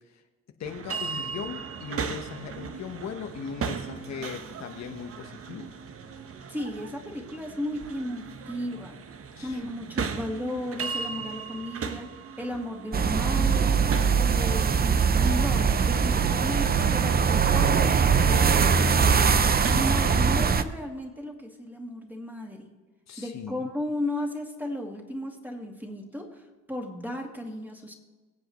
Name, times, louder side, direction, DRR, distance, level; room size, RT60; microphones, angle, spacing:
voice 1, 0.6-5.7 9.4-9.7 23.1-23.7, left 7 dB, 60° left, 4 dB, 1.2 m, -38 dB
sound 1, 0.6-20.3, right 5 dB, 50° right, 1.0 m, -38 dB
voice 2, 6.5-9.0 9.4-12.1 12.4-13.8 14.1-14.8 15.2-22.7 23.2-26.4 26.7-27.9, left 1 dB, 5° right, 0 dB, 2.4 m, -34 dB
sound 2, 12.9-20.6, right 6 dB, 30° right, 0.7 m, -22 dB
23.5 x 7.8 x 3.1 m, 1.2 s
cardioid pair, 90°, 30 cm